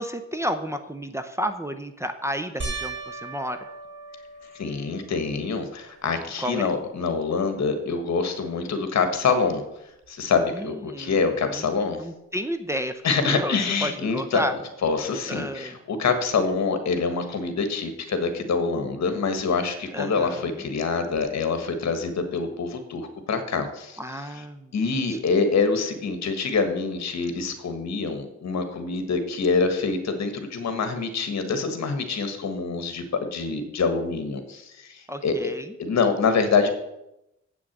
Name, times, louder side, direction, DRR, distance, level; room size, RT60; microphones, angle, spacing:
voice 1, 0.0-3.7 6.4-6.7 10.5-11.2 11.5-11.7 12.0-14.5 15.3-15.8 19.9-20.6 24.0-25.3 35.1-35.7, equal, 10° right, 8 dB, 0.7 m, -32 dB
sound 1, 2.6-5.2 5.8-6.4 6.7-6.8 10.0-10.1, right 3 dB, 40° right, 2.1 m, -37 dB
voice 2, 4.5-9.6 10.1-12.0 13.0-14.4 14.8-24.0 24.7-35.4 35.8-36.7, left 4 dB, 65° left, 7 dB, 1.5 m, -25 dB
8.2 x 6.2 x 7.3 m, 0.86 s
cardioid pair, 105°, 30 cm